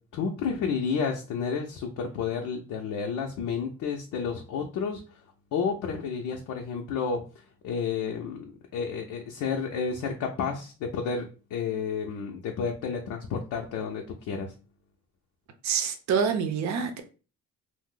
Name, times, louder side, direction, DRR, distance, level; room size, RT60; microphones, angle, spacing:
voice 1, 0.1-5.0 5.5-7.2 7.6-8.4 8.7-14.5, left 6 dB, 80° left, 0.5 m, -31 dB
voice 2, 15.6-17.0, right 6 dB, 65° right, 0.6 m, -26 dB
2.5 x 2.0 x 3.6 m
cardioid pair, 90°, 30 cm